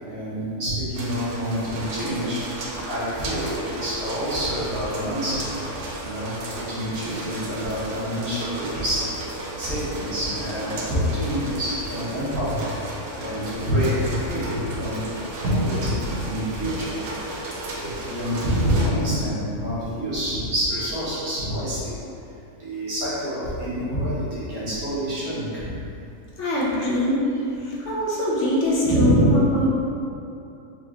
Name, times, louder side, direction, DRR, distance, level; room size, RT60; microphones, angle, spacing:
voice 1, 0.0-5.6 6.0-9.1 9.6-12.6 13.2-17.0 17.8-22.0 22.6-25.8 28.8-29.3, equal, 80° right, -10 dB, 1.8 m, -26 dB
sound 1, 0.9-18.9, right 1 dB, 60° right, 0.6 m, -34 dB
voice 2, 26.4-27.3 27.6-29.7, left 1 dB, 60° left, -5 dB, 1.0 m, -23 dB
4.6 x 3.2 x 3.1 m, 2.7 s
omnidirectional pair, 1.5 m